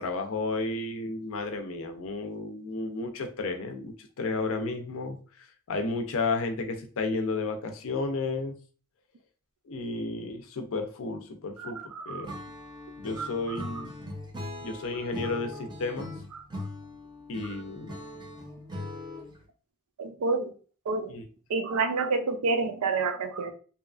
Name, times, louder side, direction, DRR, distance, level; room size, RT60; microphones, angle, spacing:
voice 1, 0.0-8.5 9.7-11.8 12.1-12.4 13.0-13.9 14.6-16.1 17.3-18.0 21.1-21.2, left 3 dB, 65° left, 6 dB, 0.5 m, -32 dB
voice 2, 11.6-12.4 13.2-13.7 16.3-16.4 20.0-20.5 20.9-21.2 21.5-23.5, right 4 dB, 75° right, 7 dB, 0.4 m, -29 dB
Acoustic guitar / Strum, 12.2-19.4, left 1 dB, 20° right, 0.6 m, -40 dB
2.7 x 2.3 x 2.4 m, 0.39 s
head